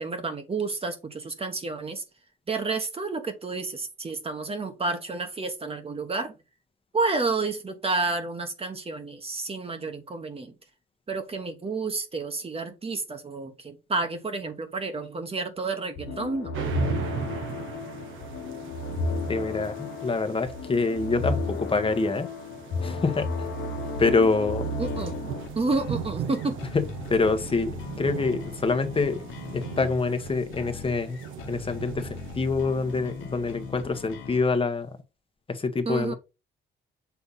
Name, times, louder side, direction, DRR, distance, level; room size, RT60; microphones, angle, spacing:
voice 1, 0.0-2.0 2.5-6.3 6.9-10.5 11.1-16.5 24.8-25.2 25.5-26.6 35.8-36.1, right 3 dB, 30° right, 1.3 m, -30 dB
sound 1, 16.0-25.5, left 2 dB, 65° left, 1.2 m, -32 dB
sound 2, 16.5-34.4, right 8 dB, 85° right, 1.2 m, -39 dB
voice 2, 19.3-22.3 22.8-23.3 24.0-24.8 26.7-29.2 29.5-31.2 31.5-34.9 35.5-36.1, left 4 dB, 25° left, 1.2 m, -26 dB
sound 3, 24.8-34.4, left 5 dB, 90° left, 1.2 m, -41 dB
7.0 x 3.4 x 4.1 m
cardioid pair, 90°, 20 cm